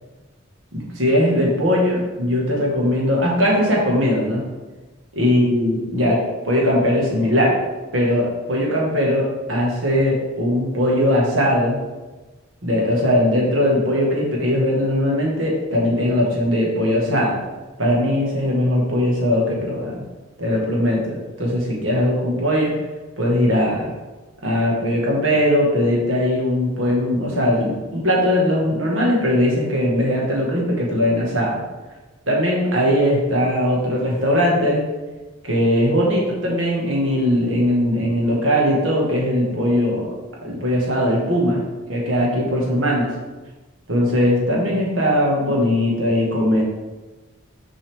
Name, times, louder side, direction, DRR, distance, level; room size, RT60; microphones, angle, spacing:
voice 1, 0.7-4.4 5.1-6.2 6.4-7.5 7.9-11.8 12.6-17.4 17.8-20.0 20.4-22.7 23.2-23.9 24.4-31.6 32.3-34.8 35.4-40.1 40.4-41.6 41.9-43.1 43.9-46.6, equal, 70° right, -3 dB, 1.7 m, -19 dB
6.0 x 5.4 x 3.5 m, 1.2 s
head